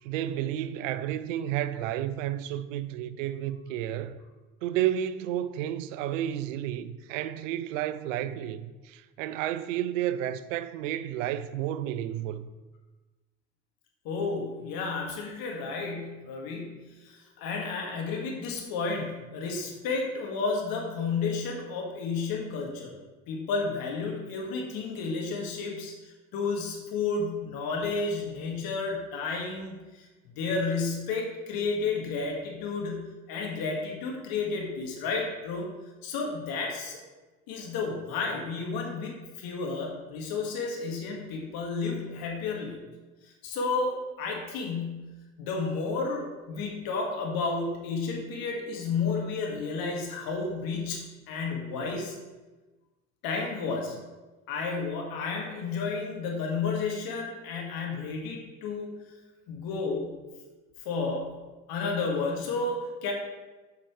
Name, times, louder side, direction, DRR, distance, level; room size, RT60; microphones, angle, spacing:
voice 1, 0.0-4.2 4.6-12.5, right 11 dB, 75° right, 0.5 m, -31 dB
voice 2, 14.0-22.9 23.3-30.0 30.4-35.7 36.0-37.0 37.5-42.8 43.4-52.1 53.2-54.0 54.5-58.9 59.5-60.1 60.8-61.3 61.7-63.1, left 4 dB, 65° left, 1.8 m, -32 dB
8.6 x 5.9 x 3.1 m
hypercardioid pair, 60°, 38 cm